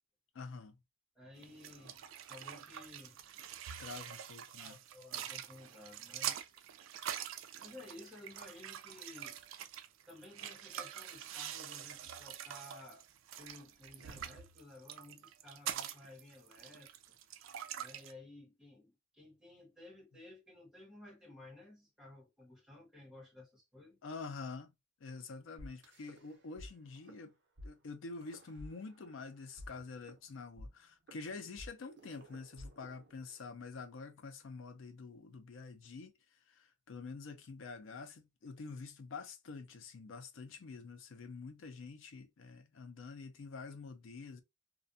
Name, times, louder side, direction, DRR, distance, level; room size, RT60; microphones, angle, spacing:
voice 1, 0.3-0.8 3.8-4.8 24.0-24.7 25.0-27.3 27.6-36.1 36.5-44.4, left 4 dB, 85° left, 0.5 m, -47 dB
voice 2, 1.1-3.2 4.6-6.5 7.6-9.4 10.1-13.1 13.4-17.2 17.7-24.0, left 2 dB, 5° right, 1.1 m, -55 dB
sound 1, 1.4-18.1, right 10 dB, 85° right, 0.3 m, -45 dB
sound 2, 25.6-26.7 27.0-27.2 27.6-27.7 28.2-29.2 29.6-33.6, left 1 dB, 65° right, 0.7 m, -52 dB
2.4 x 2.2 x 2.5 m
head